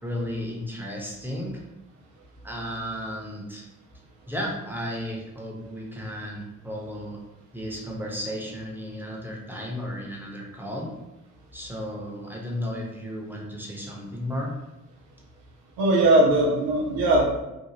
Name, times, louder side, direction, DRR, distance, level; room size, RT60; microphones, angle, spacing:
voice 1, 0.0-1.6 2.4-3.7 4.3-7.2 7.5-10.9 11.5-14.5, equal, 5° right, -3 dB, 0.9 m, -34 dB
voice 2, 15.8-17.2, right 1 dB, 90° right, -2 dB, 0.6 m, -19 dB
2.8 x 2.3 x 2.9 m, 0.95 s
hypercardioid pair, 40°, 35 cm